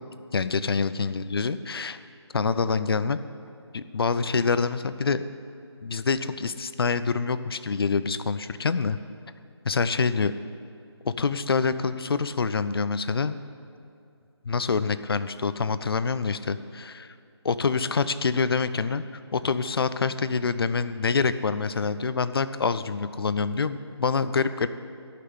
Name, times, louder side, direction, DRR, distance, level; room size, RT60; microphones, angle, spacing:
voice 1, 0.3-2.0 2.3-3.2 3.7-5.2 5.8-9.0 9.6-10.3 11.0-13.3 14.4-17.1 17.4-24.7, left 5 dB, 55° left, 13 dB, 0.6 m, -26 dB
13.5 x 5.9 x 9.6 m, 2.4 s
figure-of-eight pair, 160°, 15 cm